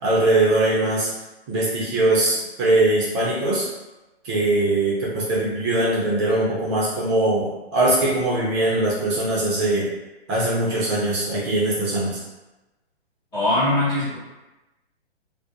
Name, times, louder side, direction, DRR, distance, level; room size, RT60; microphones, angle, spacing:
voice 1, 0.0-1.1 1.5-3.7 4.2-9.9 10.3-12.2, right 2 dB, 25° right, -6 dB, 0.6 m, -21 dB
voice 2, 13.3-14.2, left 1 dB, 10° left, -11 dB, 0.6 m, -21 dB
2.4 x 2.1 x 2.6 m, 1.1 s
hypercardioid pair, 135°, 33 cm